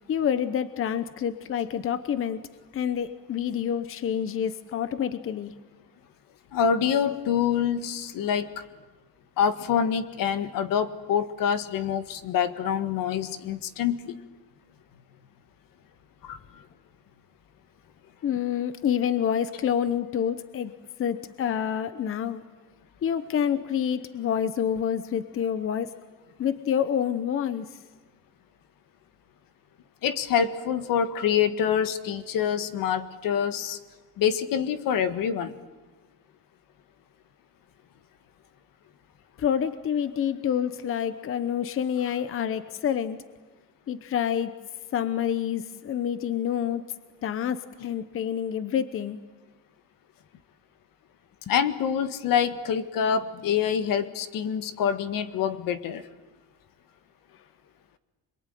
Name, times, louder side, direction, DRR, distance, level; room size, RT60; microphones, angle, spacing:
voice 1, 0.1-2.4 2.7-5.5 18.2-20.7 21.0-22.4 23.0-25.9 26.4-27.8 39.4-43.2 43.9-44.5 44.9-46.8 47.2-49.2, left 9 dB, 40° left, 13 dB, 0.9 m, -27 dB
voice 2, 6.5-8.6 9.4-14.2 16.2-16.4 30.0-33.8 34.2-35.5 51.5-56.0, left 8 dB, 70° left, 11 dB, 1.7 m, -26 dB
26.5 x 22.5 x 9.2 m, 1.2 s
cardioid pair, 165°, 35 cm